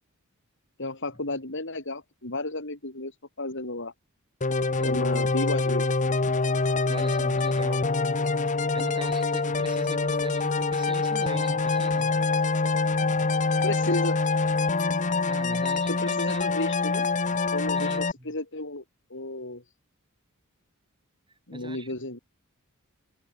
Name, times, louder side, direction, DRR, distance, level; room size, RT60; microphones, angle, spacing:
voice 1, 0.8-3.1 3.4-3.9 4.8-5.9 13.6-14.2 15.9-17.1 17.5-18.8 19.1-19.6 21.5-22.2, left 2 dB, 60° left, 5.8 m, -32 dB
sound 1, 4.4-18.1, left 3 dB, 35° left, 1.1 m, -25 dB
voice 2, 4.8-5.3 6.9-8.0 8.4-12.2 15.3-16.5 17.7-18.3 21.5-21.9, right 2 dB, 20° right, 6.1 m, -41 dB
head